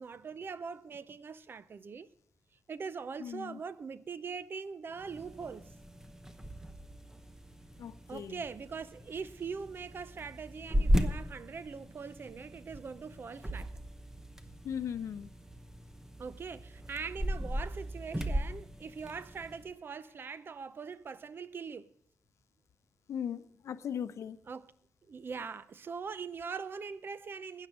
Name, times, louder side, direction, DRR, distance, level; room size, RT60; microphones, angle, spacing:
voice 1, 0.0-2.1 2.7-5.7 8.1-13.7 16.2-21.9 24.5-24.7 25.1-27.7, right 5 dB, 45° right, 0.6 m, -42 dB
voice 2, 3.2-3.6 7.8-8.4 14.6-15.3 23.1-24.4, left 8 dB, 75° left, 0.7 m, -38 dB
sound 1, 4.9-19.7, equal, 10° right, 0.9 m, -37 dB
13.0 x 9.1 x 6.3 m
wide cardioid pair, 115°, 5 cm